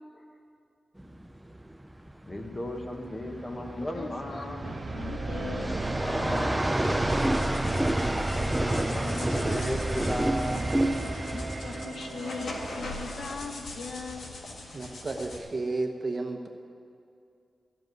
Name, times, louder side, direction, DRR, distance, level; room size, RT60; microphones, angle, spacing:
sound 1, 1.0-11.8, right 1 dB, 5° right, 0.5 m, -30 dB
voice 1, 2.3-4.6 8.3-10.8, left 1 dB, 20° left, 3 dB, 1.3 m, -35 dB
voice 2, 3.9-6.7 11.3-14.3, left 4 dB, 65° left, 6 dB, 0.9 m, -40 dB
sound 2, 4.6-13.7, right 3 dB, 65° right, 0.8 m, -35 dB
sound 3, 6.7-15.4, left 2 dB, 85° left, 1.9 m, -42 dB
voice 3, 14.7-16.5, right 3 dB, 35° right, 3 dB, 1.1 m, -32 dB
14.0 x 7.8 x 9.4 m, 2.5 s
wide cardioid pair, 170°, 0 cm